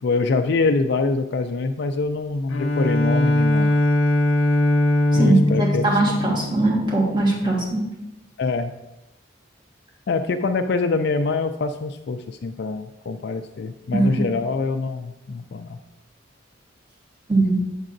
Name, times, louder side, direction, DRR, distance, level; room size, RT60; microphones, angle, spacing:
voice 1, 0.0-3.7 5.1-5.9 8.4-8.7 10.1-15.8, left 3 dB, 55° left, 6 dB, 0.4 m, -24 dB
Bowed string instrument, 2.5-7.1, left 1 dB, 85° left, 0.8 m, -20 dB
voice 2, 5.1-7.8 13.9-14.2 17.3-17.6, right 2 dB, 25° right, -3 dB, 1.5 m, -20 dB
7.9 x 7.4 x 2.6 m, 0.92 s
head